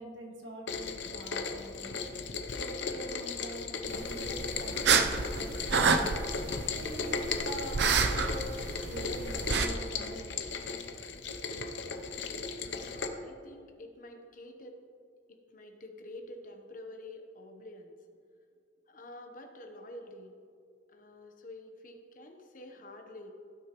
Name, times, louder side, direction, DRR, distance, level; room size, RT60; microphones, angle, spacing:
voice 1, 0.0-2.0 2.5-5.9 6.7-8.5 8.8-10.7, right 1 dB, 85° right, 0 dB, 1.7 m, -45 dB
Rain, 0.7-13.1, left 4 dB, 75° left, 0.7 m, -37 dB
sound 1, 3.9-9.7, right 5 dB, 65° right, 0.6 m, -29 dB
voice 2, 12.6-14.8 15.3-17.9 18.9-20.3 20.9-23.3, left 1 dB, 45° left, 4 dB, 1.0 m, -48 dB
16.0 x 6.3 x 3.1 m, 2.3 s
head